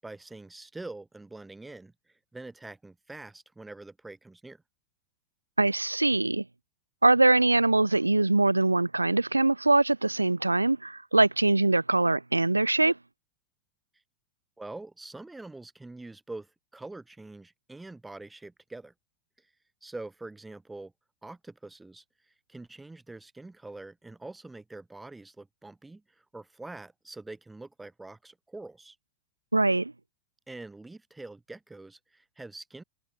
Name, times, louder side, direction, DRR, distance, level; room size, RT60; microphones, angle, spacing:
voice 1, 0.0-4.6 14.6-18.9 19.4-19.5 19.8-20.9 21.2-29.0 30.5-32.8, right 2 dB, 5° right, 7.0 m, -45 dB
voice 2, 5.6-6.4 7.0-12.9 29.5-29.9, right 2 dB, 85° right, 0.3 m, -23 dB
figure-of-eight pair, 90°, 0 cm